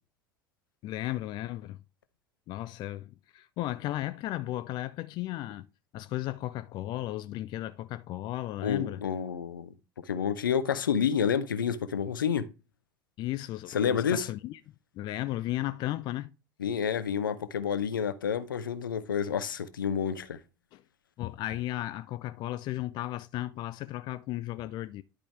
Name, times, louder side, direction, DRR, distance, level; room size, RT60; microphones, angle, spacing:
voice 1, 0.8-1.8 2.5-5.7 5.9-9.0 13.2-14.6 14.9-16.3 20.7-20.8 21.2-25.0, left 15 dB, 40° left, 0.4 m, -35 dB
voice 2, 8.6-9.7 10.1-12.5 13.7-14.3 16.6-20.4, left 7 dB, 75° left, 0.7 m, -29 dB
10.5 x 4.9 x 3.4 m
figure-of-eight pair, 75°, 11 cm